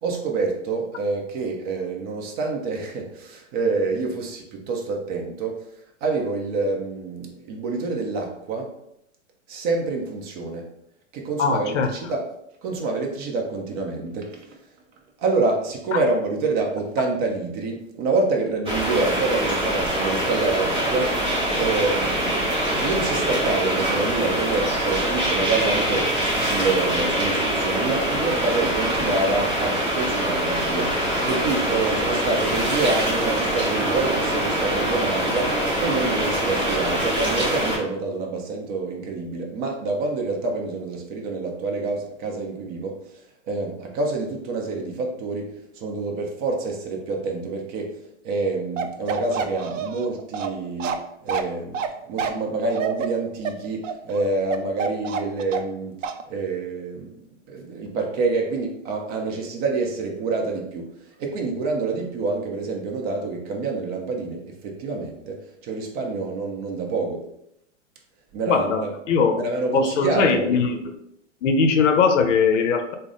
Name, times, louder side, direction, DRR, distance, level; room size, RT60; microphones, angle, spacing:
voice 1, 0.0-5.6 6.0-8.7 9.5-10.7 11.1-12.3 12.6-14.6 15.2-21.2 21.6-22.4 22.8-26.1 26.4-43.1 43.5-48.0 48.2-57.2 57.5-67.3 68.3-68.9 69.4-70.6, right 3 dB, 30° right, 1 dB, 0.7 m, -27 dB
voice 2, 11.4-11.9 15.9-16.0 68.5-69.4 69.7-70.8 71.4-72.9, left 5 dB, 70° left, 6 dB, 0.7 m, -20 dB
sound 1, 18.7-37.8, right 1 dB, 15° right, 1.3 m, -24 dB
Bark, 48.8-55.8 56.0-56.2, right 6 dB, 80° right, 0.5 m, -28 dB
3.4 x 2.1 x 3.8 m, 0.78 s
hypercardioid pair, 135°, 38 cm